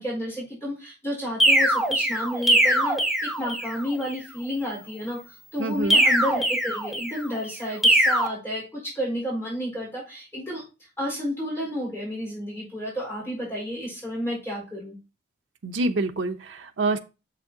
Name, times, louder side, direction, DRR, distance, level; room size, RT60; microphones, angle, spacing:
voice 1, 0.0-10.6 11.0-15.0, equal, 15° left, 4.2 m, -31 dB
sound 1, 1.4-3.8 5.9-7.3 7.8-8.3, right 1 dB, ahead, 1.2 m, -21 dB
voice 2, 5.6-6.0 15.6-17.0, right 2 dB, 90° right, 0.7 m, -26 dB
7.1 x 6.6 x 2.8 m
head